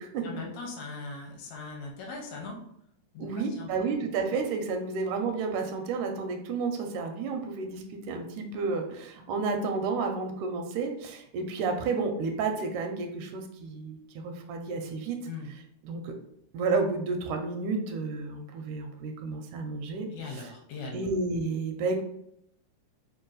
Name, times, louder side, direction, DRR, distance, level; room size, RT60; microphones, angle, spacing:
voice 1, 0.2-2.6 3.1-3.7 15.3-15.5 20.1-21.1, left 4 dB, 75° left, 0 dB, 1.8 m, -40 dB
voice 2, 3.2-14.0 14.2-15.2 15.8-16.1 16.5-20.1 20.4-20.5 20.9-22.0, right 4 dB, 85° right, 4 dB, 2.0 m, -31 dB
4.6 x 2.6 x 3.8 m, 0.74 s
omnidirectional pair, 3.5 m